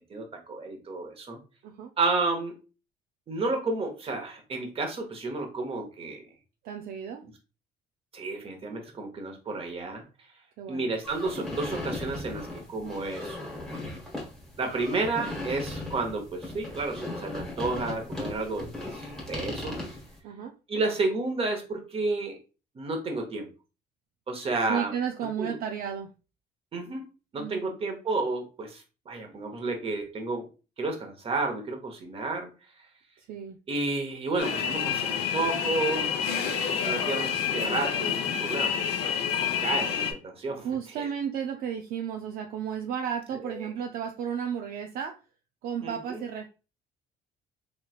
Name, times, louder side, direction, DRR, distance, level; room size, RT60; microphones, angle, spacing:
voice 1, 0.1-1.4 2.0-2.5 3.3-6.2 8.1-10.0 10.7-13.4 13.7-13.9 14.6-19.8 20.7-22.4 22.7-23.5 24.3-24.9 25.4-25.6 26.7-27.0 27.3-30.5 30.8-32.5 33.7-38.7 39.6-40.7 41.0-41.1 43.4-43.7 45.8-46.2, right 3 dB, 35° right, 3 dB, 1.0 m, -31 dB
voice 2, 6.6-7.2 10.6-10.9 20.2-20.5 24.7-26.1 27.4-27.8 33.2-33.6 40.6-45.2 45.6-46.5, right 8 dB, 60° right, 4 dB, 0.4 m, -33 dB
sound 1, 11.0-20.2, left 2 dB, ahead, 1.1 m, -37 dB
sound 2, 34.4-40.1, left 7 dB, 80° left, 0.7 m, -28 dB
3.2 x 3.0 x 2.3 m, 0.32 s
cardioid pair, 110°, 17 cm